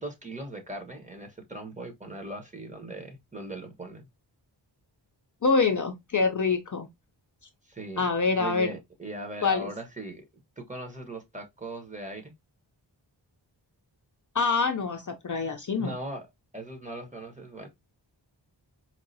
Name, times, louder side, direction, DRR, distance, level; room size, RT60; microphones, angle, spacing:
voice 1, 0.0-4.1 7.6-8.0 8.4-10.2 10.6-12.3 15.8-16.3 16.5-17.7, right 2 dB, 15° right, 1.1 m, -39 dB
voice 2, 5.4-6.9 8.0-8.7 9.4-9.7 14.3-15.9, left 4 dB, 45° left, 0.5 m, -25 dB
4.6 x 2.5 x 2.6 m
wide cardioid pair, 100°, 43 cm